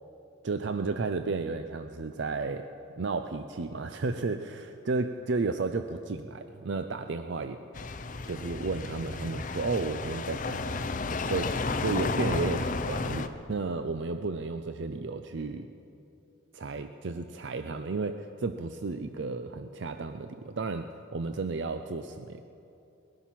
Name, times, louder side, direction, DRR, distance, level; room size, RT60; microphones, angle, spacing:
voice 1, 0.4-2.7 3.0-7.6 8.3-15.7 16.5-22.5, right 3 dB, 60° right, 9 dB, 0.5 m, -33 dB
sound 1, 7.7-13.3, left 3 dB, 40° left, 0.6 m, -32 dB
20.5 x 11.5 x 5.9 m, 2.8 s
head